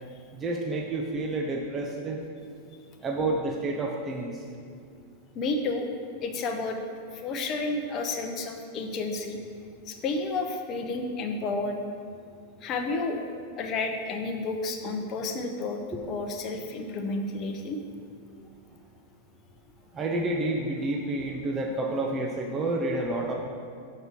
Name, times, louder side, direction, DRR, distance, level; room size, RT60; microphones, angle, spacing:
voice 1, 0.3-2.2 3.0-4.3 19.9-23.3, right 2 dB, 20° right, 1 dB, 0.7 m, -29 dB
voice 2, 5.3-5.9 6.2-6.8 7.1-9.4 9.9-11.8 12.6-13.2 13.6-17.8, left 3 dB, 35° left, 3 dB, 0.7 m, -31 dB
6.5 x 4.7 x 6.1 m, 2.2 s
figure-of-eight pair, 90°, 0 cm